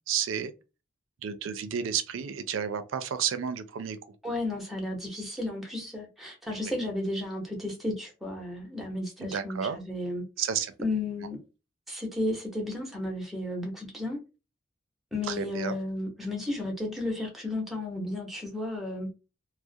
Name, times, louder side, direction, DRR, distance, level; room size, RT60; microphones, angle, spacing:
voice 1, 0.1-0.5 1.2-4.0 6.5-6.6 9.2-9.8 10.4-10.7 15.3-15.8, right 8 dB, 85° right, 0.4 m, -31 dB
voice 2, 4.2-10.2 10.8-11.4 11.9-14.2 15.1-19.1, left 2 dB, ahead, 0.7 m, -33 dB
2.3 x 2.0 x 2.6 m
head